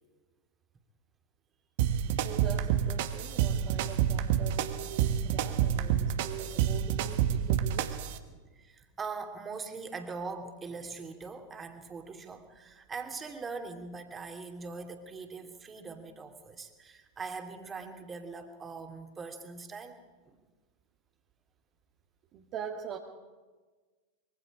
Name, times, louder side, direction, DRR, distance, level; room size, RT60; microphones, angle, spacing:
sound 1, 1.8-8.2, right 9 dB, 50° right, 1.5 m, -28 dB
voice 1, 2.2-8.0 22.3-23.0, right 8 dB, 35° right, 1 dB, 2.0 m, -42 dB
voice 2, 8.3-20.0 20.3-20.4, right 4 dB, 20° right, 5 dB, 2.9 m, -42 dB
25.0 x 23.5 x 5.1 m, 1.3 s
figure-of-eight pair, 90°, 0 cm